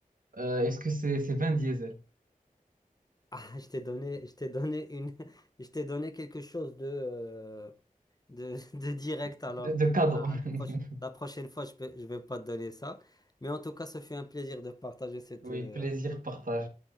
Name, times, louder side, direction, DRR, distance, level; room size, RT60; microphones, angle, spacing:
voice 1, 0.3-1.9 9.6-10.9 15.4-16.7, right 1 dB, 70° right, 1.4 m, -30 dB
voice 2, 3.3-7.7 8.3-9.7 10.1-10.7 11.0-15.9, left 1 dB, 25° left, 0.8 m, -38 dB
11.0 x 4.7 x 2.6 m
wide cardioid pair, 45°, 15 cm